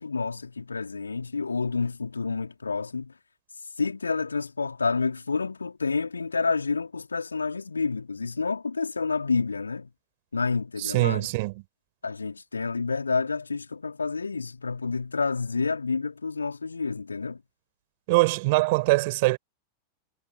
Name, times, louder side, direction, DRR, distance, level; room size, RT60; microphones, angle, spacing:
voice 1, 0.0-3.1 3.8-9.9 10.3-11.3 12.0-17.4, left 4 dB, 75° left, 3.8 m, -29 dB
voice 2, 10.8-11.6 18.1-19.4, right 24 dB, 50° right, 4.5 m, -23 dB
figure-of-eight pair, 90°, 0 cm